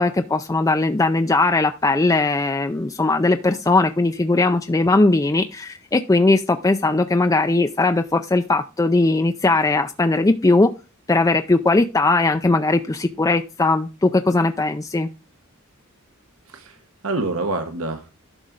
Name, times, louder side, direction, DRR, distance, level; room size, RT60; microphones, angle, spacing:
voice 1, 0.0-10.7 11.1-15.1, left 2 dB, 15° left, 0.4 m, -19 dB
voice 2, 16.5-18.1, right 2 dB, 70° right, 1.3 m, -27 dB
11.5 x 6.1 x 3.9 m
head